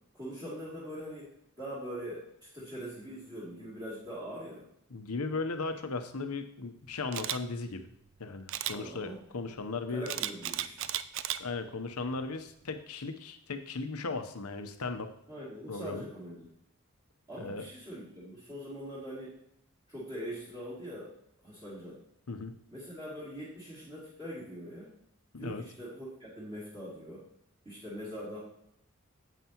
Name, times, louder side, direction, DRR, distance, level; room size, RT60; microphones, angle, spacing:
voice 1, 0.1-4.7 8.7-9.2 9.9-10.9 15.3-16.5 17.3-19.3 19.9-21.1 21.4-22.0 22.7-24.9 25.3-27.2 27.6-28.4, equal, 20° right, -10 dB, 2.6 m, -42 dB
voice 2, 4.9-7.9 8.2-10.0 11.4-15.1 15.7-16.1 17.4-17.6 22.3-22.6 25.3-25.6, left 3 dB, 90° left, 8 dB, 0.9 m, -37 dB
Camera, 7.1-7.4 8.5-8.8 10.1-11.4 11.9-12.1, right 12 dB, 60° right, 0.4 m, -34 dB
9.2 x 8.1 x 3.0 m, 0.74 s
head